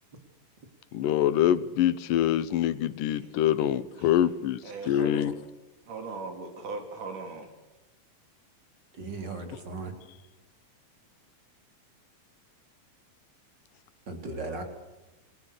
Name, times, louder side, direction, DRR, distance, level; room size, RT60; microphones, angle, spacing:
voice 1, 0.9-5.3, left 11 dB, 85° left, 16 dB, 2.6 m, -25 dB
voice 2, 4.6-5.3 5.9-7.5, right 3 dB, 70° right, 5 dB, 5.1 m, -38 dB
voice 3, 9.0-9.9 14.1-14.6, right 3 dB, 35° right, 5 dB, 3.9 m, -36 dB
29.0 x 21.5 x 6.7 m, 1.1 s
omnidirectional pair, 3.7 m